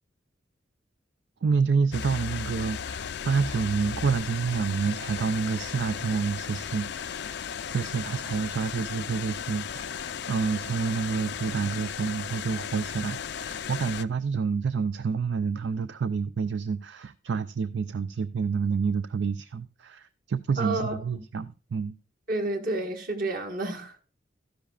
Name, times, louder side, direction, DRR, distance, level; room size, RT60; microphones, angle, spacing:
voice 1, 1.4-21.9, right 5 dB, 65° right, 0.4 m, -28 dB
sound 1, 1.9-14.0, left 7 dB, 60° left, 0.4 m, -35 dB
voice 2, 20.6-21.0 22.3-24.0, right 2 dB, 50° right, 1.6 m, -30 dB
12.5 x 10.5 x 2.4 m
head